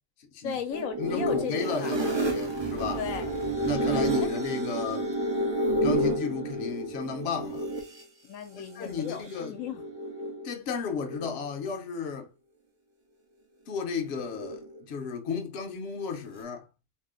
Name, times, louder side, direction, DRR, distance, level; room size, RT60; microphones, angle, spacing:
voice 1, 0.4-1.9 3.0-3.4 3.9-4.4 8.2-9.8, left 8 dB, 80° left, 1.0 m, -36 dB
sound 1, 0.7-8.0 9.0-10.5 10.8-11.5 14.0-14.8, right 1 dB, 40° right, 0.4 m, -30 dB
voice 2, 1.0-3.0 3.6-5.1 5.8-7.7 8.5-9.6 10.4-12.3 13.7-16.7, left 5 dB, 60° left, 0.8 m, -33 dB
2.7 x 2.0 x 3.5 m
omnidirectional pair, 1.4 m